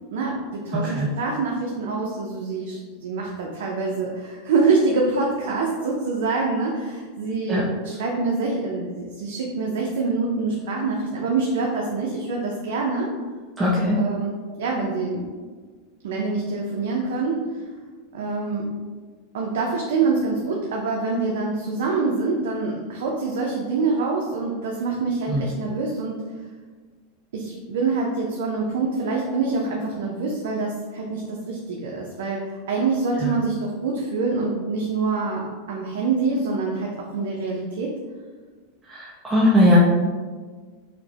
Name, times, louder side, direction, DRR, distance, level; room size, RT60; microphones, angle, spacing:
voice 1, 0.1-13.1 13.9-14.3 14.6-15.2 16.0-17.6 18.1-18.7 19.3-26.2 27.3-37.9, right 4 dB, 80° right, -1 dB, 0.5 m, -25 dB
voice 2, 0.7-1.1 7.5-7.6 13.6-14.0 25.3-25.5 33.2-33.3 38.9-39.8, left 1 dB, 10° right, -8 dB, 0.5 m, -20 dB
5.0 x 2.1 x 2.8 m, 1.5 s
supercardioid pair, 145°, 0 cm